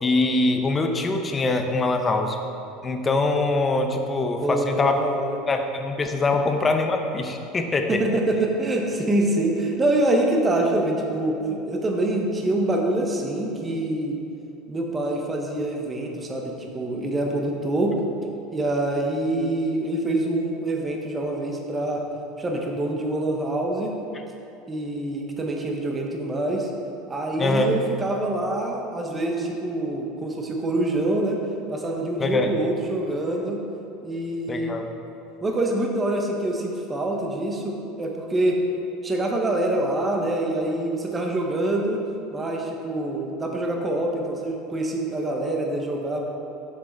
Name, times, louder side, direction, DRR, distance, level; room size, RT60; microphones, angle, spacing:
voice 1, 0.0-2.4 2.8-5.0 5.5-8.0 27.4-27.7 32.2-32.5 34.5-34.9, left 2 dB, 20° left, 5 dB, 0.6 m, -23 dB
voice 2, 4.4-5.4 7.9-14.2 14.7-18.0 18.5-22.0 22.4-23.9 24.7-26.7 27.1-31.4 31.7-33.6 34.0-34.8 35.4-38.6 39.0-42.0 42.3-46.2, right 1 dB, 20° right, 1 dB, 0.8 m, -25 dB
6.3 x 6.2 x 4.0 m, 2.9 s
supercardioid pair, 135°, 0 cm